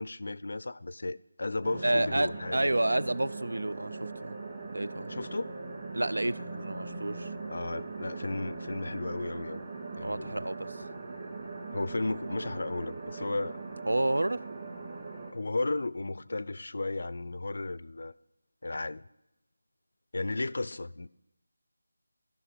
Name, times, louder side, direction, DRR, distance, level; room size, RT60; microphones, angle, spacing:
voice 1, 0.0-2.7 5.1-5.6 7.5-9.6 10.0-10.4 11.7-13.6 15.3-18.1 18.6-19.0 20.1-21.1, left 2 dB, 60° left, 0.4 m, -34 dB
sound 1, 1.6-15.3, right 3 dB, 30° right, 2.1 m, -40 dB
voice 2, 1.8-4.4 4.7-5.1 5.9-7.3 10.0-10.8 13.9-14.4, right 1 dB, 85° right, 0.3 m, -30 dB
15.0 x 5.8 x 5.0 m
figure-of-eight pair, 170°, 0 cm